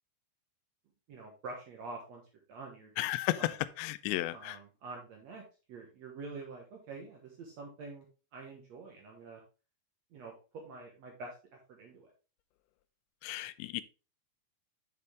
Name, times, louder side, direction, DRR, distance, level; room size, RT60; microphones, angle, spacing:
voice 1, 1.1-2.2 2.5-2.9 3.4-3.5 4.3-5.4 5.7-8.1 8.3-9.4 10.1-10.3 10.6-11.3 11.7-12.1, right 3 dB, 85° right, 1.5 m, -46 dB
voice 2, 3.0-4.6 13.2-13.8, left 16 dB, 85° left, 2.8 m, -34 dB
7.9 x 6.7 x 3.3 m
omnidirectional pair, 5.1 m